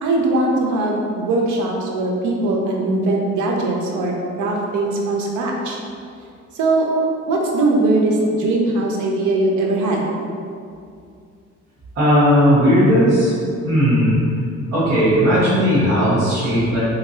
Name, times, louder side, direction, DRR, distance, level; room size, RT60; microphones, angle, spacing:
voice 1, 0.0-5.8 6.5-6.9 7.3-10.1, right 2 dB, 75° right, -1 dB, 0.7 m, -20 dB
voice 2, 11.9-13.3 13.6-14.2 14.7-16.8, equal, 50° right, -13 dB, 1.4 m, -16 dB
3.6 x 2.9 x 2.7 m, 2.4 s
cardioid pair, 90°, 30 cm